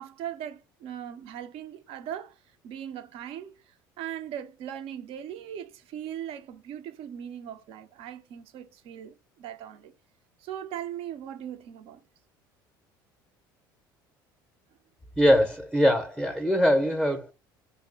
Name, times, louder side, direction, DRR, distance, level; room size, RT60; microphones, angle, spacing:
voice 1, 0.0-2.4 2.6-9.9 10.4-12.0, right 10 dB, 60° right, 0.5 m, -39 dB
voice 2, 15.2-17.3, equal, 5° right, 0.6 m, -22 dB
2.6 x 2.0 x 3.8 m
hypercardioid pair, 70°, 11 cm